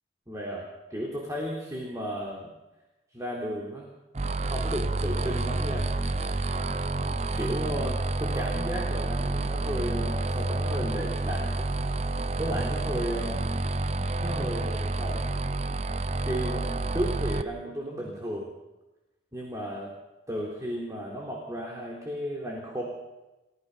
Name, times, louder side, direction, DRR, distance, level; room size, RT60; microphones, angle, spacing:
voice 1, 0.3-2.5 3.1-3.9 4.5-5.9 7.4-11.7 12.4-13.4 14.2-15.3 16.2-18.5 19.3-19.9 20.3-22.8, equal, 20° right, -2 dB, 3.6 m, -34 dB
sound 1, 4.1-17.4, right 2 dB, 35° right, 0.7 m, -29 dB
30.0 x 16.5 x 5.6 m, 1.1 s
head